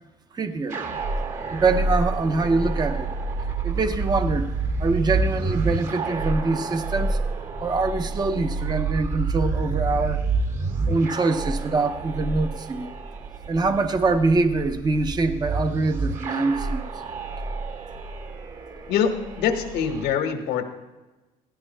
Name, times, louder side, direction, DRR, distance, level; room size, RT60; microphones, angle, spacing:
voice 1, 0.3-0.8 1.5-3.1 3.6-4.5 4.8-7.2 7.6-10.2 10.9-12.9 13.5-16.8, right 3 dB, 25° right, 8 dB, 0.7 m, -24 dB
sound 1, 0.7-20.1, right 3 dB, 50° right, 1.6 m, -28 dB
voice 2, 18.9-20.6, left 7 dB, 85° left, 5 dB, 1.5 m, -24 dB
17.0 x 15.5 x 2.2 m, 1.1 s
cardioid pair, 110°, 17 cm